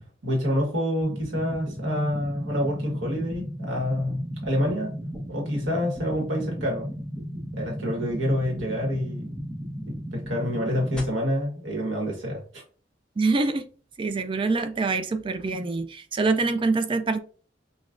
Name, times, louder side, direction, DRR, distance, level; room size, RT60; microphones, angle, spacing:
voice 1, 0.2-4.9 5.3-6.9 7.5-9.4 9.9-12.6, equal, 85° right, 1.4 m, -27 dB
sound 1, 1.0-11.0, equal, 5° left, 1.0 m, -35 dB
voice 2, 13.2-13.7 14.0-17.2, right 3 dB, 30° right, 0.3 m, -25 dB
5.9 x 2.3 x 2.5 m
head